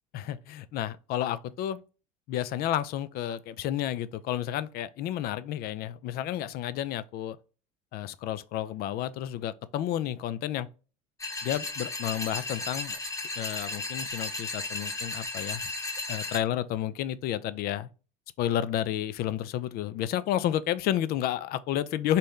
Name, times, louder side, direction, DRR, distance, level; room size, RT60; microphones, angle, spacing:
voice 1, 0.1-1.8 2.3-7.4 7.9-10.7 11.4-13.0 13.4-15.6 16.1-17.9 18.4-22.2, left 11 dB, 45° left, 0.4 m, -31 dB
sound 1, 11.2-16.4, left 3 dB, 15° left, 0.9 m, -35 dB
4.1 x 3.1 x 3.6 m
hypercardioid pair, 70°, 21 cm